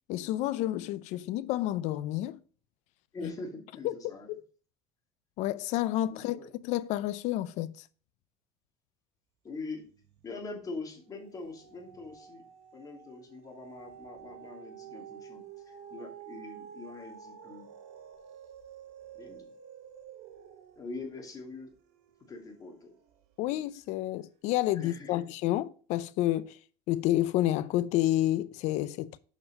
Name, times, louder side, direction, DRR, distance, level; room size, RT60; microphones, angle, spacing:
voice 1, 0.1-2.4 3.2-3.3 3.8-4.4 5.4-6.4 6.6-7.8 23.4-26.6 26.9-29.2, left 14 dB, 65° left, 0.6 m, -30 dB
voice 2, 3.1-4.3 6.1-6.5 9.4-9.9 10.2-12.4 12.7-17.7 19.1-19.5 20.8-21.7 22.3-22.9 23.4-23.6 24.7-25.2, left 3 dB, 25° left, 2.6 m, -43 dB
sound 1, 9.9-10.5 10.8-23.3 23.9-24.0, right 8 dB, 85° right, 1.5 m, -50 dB
7.3 x 5.4 x 5.3 m
cardioid pair, 125°, 13 cm